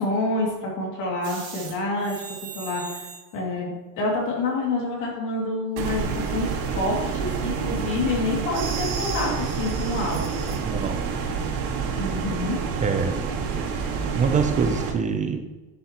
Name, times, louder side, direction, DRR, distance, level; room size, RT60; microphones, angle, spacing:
voice 1, 0.0-2.2 2.5-3.1 3.3-10.6 12.0-12.6, left 2 dB, 50° left, -2 dB, 2.4 m, -27 dB
sound 1, 1.2-1.7 2.0-3.2 8.5-10.6, right 5 dB, 50° right, 2.4 m, -37 dB
sound 2, 5.8-14.9, right 5 dB, 75° right, 1.7 m, -28 dB
voice 2, 10.6-11.0 12.8-13.2 14.1-15.4, right 5 dB, 20° right, 7 dB, 0.4 m, -24 dB
10.5 x 7.6 x 2.9 m, 1.2 s
cardioid pair, 155°, 40 cm